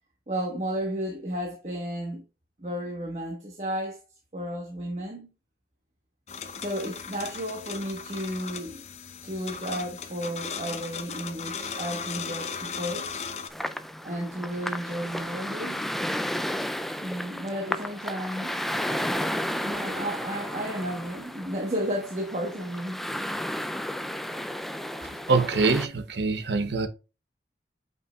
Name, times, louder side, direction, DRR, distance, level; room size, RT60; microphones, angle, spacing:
voice 1, 0.3-2.2 2.6-4.0 4.3-5.3 6.5-8.8 9.2-13.2 14.0-15.9 17.0-18.5 19.6-23.0, equal, 40° right, 1.2 m, -33 dB
sound 1, 6.3-13.5, left 6 dB, 40° left, 0.7 m, -37 dB
sound 2, 13.5-25.9, equal, ahead, 0.3 m, -33 dB
voice 2, 25.0-26.9, right 3 dB, 80° right, 0.9 m, -25 dB
8.1 x 5.3 x 2.3 m
head